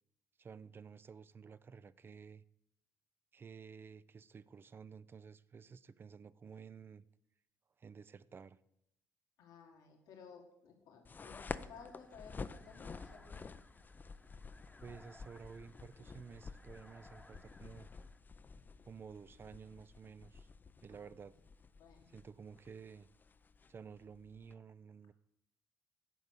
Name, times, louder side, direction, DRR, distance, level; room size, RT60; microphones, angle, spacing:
voice 1, 0.4-2.4 3.3-7.1 7.8-8.6 14.8-17.9 18.8-20.5 20.8-21.3 22.1-23.1 23.7-25.1, right 6 dB, 35° right, 0.5 m, -53 dB
voice 2, 9.4-13.4 20.9-21.1 21.8-22.2, left 6 dB, 85° left, 1.7 m, -56 dB
sound 1, 11.0-24.5, left 4 dB, 30° left, 0.5 m, -51 dB
sound 2, 11.7-18.2, left 2 dB, 10° left, 1.0 m, -63 dB
9.3 x 5.3 x 8.1 m
cardioid pair, 85°, 6 cm